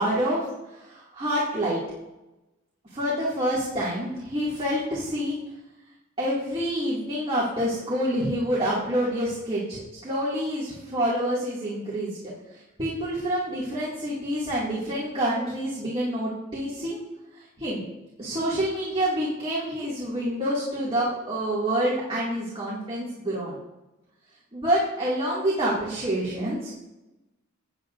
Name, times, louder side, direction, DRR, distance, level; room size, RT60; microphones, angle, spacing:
voice 1, 0.0-1.8 2.9-5.4 6.2-12.2 12.8-17.0 17.6-17.8 18.2-23.6 24.5-26.7, equal, 25° right, -7 dB, 2.2 m, -27 dB
17.5 x 9.6 x 2.6 m, 1.0 s
head